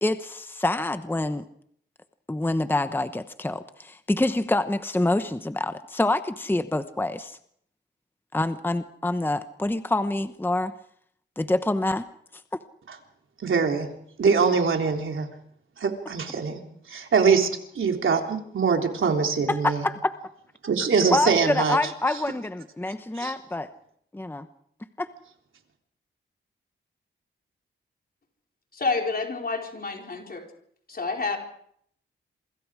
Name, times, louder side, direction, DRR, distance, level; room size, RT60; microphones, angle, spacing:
voice 1, 0.0-1.4 2.3-7.4 8.3-10.7 11.4-12.1 19.5-20.1 21.1-23.7 24.1-24.5 25.0-25.1, left 2 dB, 10° left, 10 dB, 1.0 m, -26 dB
voice 2, 13.4-13.9 14.2-15.3 15.8-16.6 16.9-17.5 17.7-19.8 20.6-21.8 23.1-23.3, right 5 dB, 70° right, 3 dB, 3.6 m, -23 dB
voice 3, 28.7-30.4 30.9-31.4, left 4 dB, 45° left, 2 dB, 4.6 m, -29 dB
27.0 x 24.5 x 5.0 m, 0.68 s
cardioid pair, 85°, 21 cm